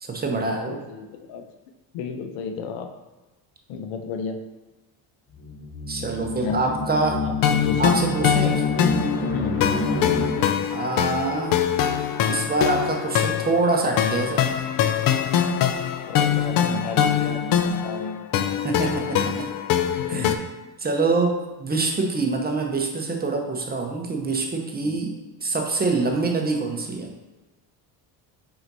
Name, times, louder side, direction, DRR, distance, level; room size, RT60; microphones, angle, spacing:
voice 1, 0.0-0.8 5.9-7.2 7.8-8.6 10.7-11.6 12.3-14.5 18.6-19.5 20.1-20.4 20.8-27.1, right 3 dB, 20° right, 2 dB, 0.8 m, -25 dB
voice 2, 0.7-1.4 1.9-2.9 3.7-4.4 6.2-6.6 7.0-7.9 9.3-9.6 16.0-18.2 20.0-20.4 24.8-24.9, left 5 dB, 85° left, 6 dB, 0.7 m, -32 dB
sound 1, 5.3-10.8, left 3 dB, 25° left, 0.9 m, -28 dB
sound 2, 7.4-20.4, left 9 dB, 50° left, 0.4 m, -23 dB
4.7 x 4.2 x 2.7 m, 1.1 s
supercardioid pair, 85°, 46 cm